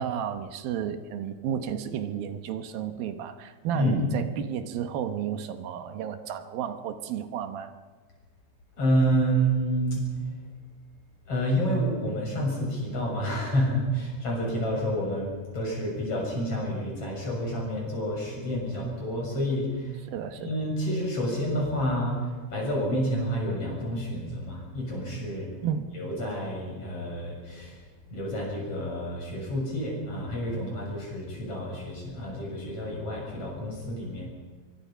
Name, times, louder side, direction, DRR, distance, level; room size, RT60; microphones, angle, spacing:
voice 1, 0.0-7.7 20.1-20.5 25.6-25.9, right 9 dB, 85° right, 9 dB, 3.0 m, -32 dB
voice 2, 8.8-10.1 11.3-20.0 20.3-25.5 25.9-27.8 28.1-34.3, equal, 40° left, -1 dB, 8.0 m, -29 dB
25.5 x 24.0 x 5.8 m, 1.4 s
omnidirectional pair, 4.1 m